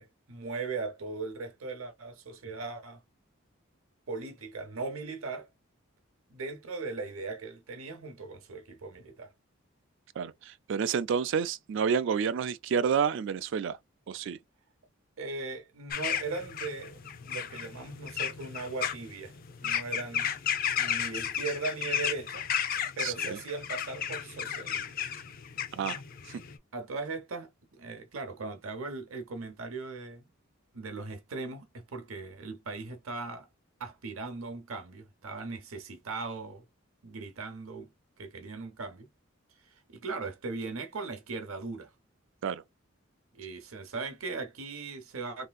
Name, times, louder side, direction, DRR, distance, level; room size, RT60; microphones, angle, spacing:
voice 1, 0.0-3.0 4.1-5.5 6.3-9.3 15.2-19.4 19.6-20.3 20.8-22.5 23.0-24.8 26.7-30.3 30.7-33.5 33.8-36.7 37.0-37.9 38.2-39.1 39.7-41.9 43.3-45.5, right 3 dB, 85° right, 0.8 m, -38 dB
voice 2, 10.2-13.8 14.1-14.4 23.0-23.4 25.7-26.0 42.4-42.6, right 7 dB, 60° right, 0.3 m, -29 dB
sound 1, 15.9-26.6, left 8 dB, 45° left, 0.5 m, -34 dB
3.3 x 2.7 x 2.3 m
head